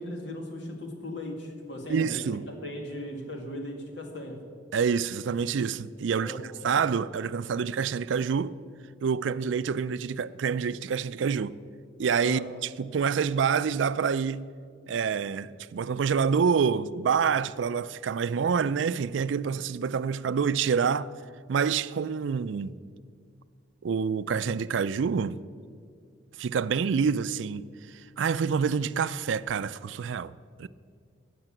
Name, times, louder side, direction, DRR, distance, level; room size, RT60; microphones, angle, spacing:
voice 1, 0.0-4.4 6.2-6.8 12.2-12.5, left 1 dB, 65° left, 2.2 m, -38 dB
voice 2, 1.9-2.5 4.7-8.6 9.0-11.6 12.0-14.5 14.9-21.1 21.5-22.7 23.8-25.4 26.4-30.3 30.6-30.7, right 6 dB, 75° right, 0.4 m, -27 dB
15.0 x 6.7 x 9.0 m
head